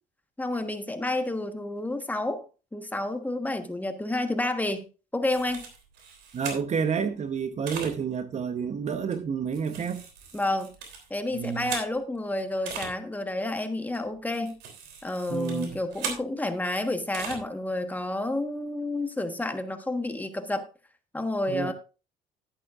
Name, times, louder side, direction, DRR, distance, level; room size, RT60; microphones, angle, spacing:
voice 1, 0.4-2.4 2.7-4.9 5.1-5.6 10.3-10.7 11.1-14.5 15.0-20.7 21.1-21.7, left 2 dB, 10° left, 1.3 m, -30 dB
sound 1, 5.2-6.9 7.7-7.9 9.1-12.2 12.6-12.9 13.9-16.2 17.1-17.4, right 6 dB, 85° right, 3.3 m, -39 dB
voice 2, 6.3-10.0 11.3-11.7 15.3-15.8 21.5-21.7, right 6 dB, 40° right, 1.0 m, -29 dB
11.5 x 10.5 x 2.5 m
cardioid pair, 110°, 17 cm